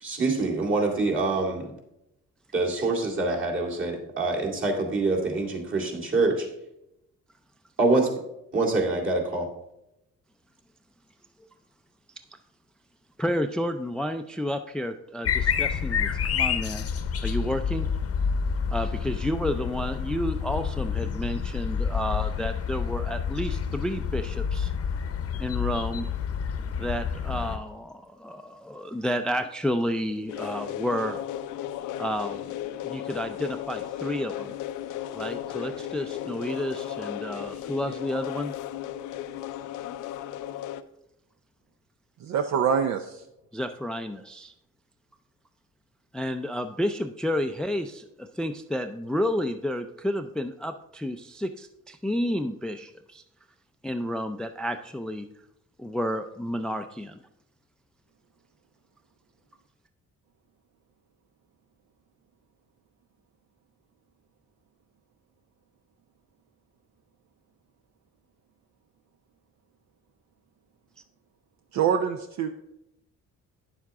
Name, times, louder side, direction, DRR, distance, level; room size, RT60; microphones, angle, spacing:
voice 1, 0.0-1.7 2.5-6.5 7.8-8.1 8.5-9.5, right 3 dB, 40° right, -2 dB, 2.3 m, -25 dB
voice 2, 13.2-16.8 17.2-17.9 18.7-24.7 25.4-26.1 26.8-31.2 32.0-32.5 32.8-34.5 35.1-38.5 43.5-44.5 46.1-53.2 53.8-55.3 55.8-57.2, equal, 5° left, 8 dB, 0.4 m, -31 dB
sound 1, 15.2-27.6, left 7 dB, 50° left, 0.8 m, -29 dB
sound 2, 30.3-40.8, left 11 dB, 85° left, 0.5 m, -35 dB
voice 3, 42.2-43.2 71.7-72.5, right 7 dB, 65° right, 7 dB, 0.6 m, -25 dB
9.2 x 7.4 x 3.6 m, 0.86 s
cardioid pair, 90°, 30 cm